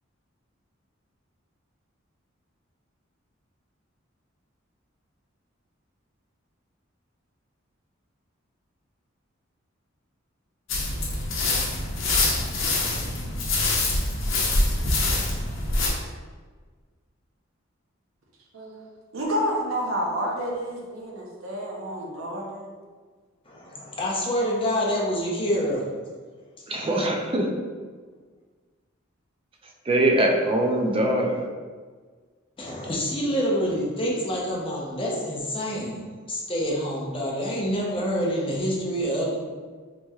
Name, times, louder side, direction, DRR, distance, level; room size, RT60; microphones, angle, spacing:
sound 1, 10.7-15.9, left 2 dB, 75° left, 0.8 m, -25 dB
voice 1, 18.5-18.9 19.1-22.7, equal, 85° right, -1 dB, 0.7 m, -29 dB
voice 2, 23.5-25.9 32.6-39.4, equal, 25° left, -3 dB, 0.7 m, -27 dB
voice 3, 26.7-27.5 29.9-31.3, right 1 dB, 25° right, 1 dB, 0.5 m, -22 dB
4.1 x 3.0 x 2.3 m, 1.5 s
head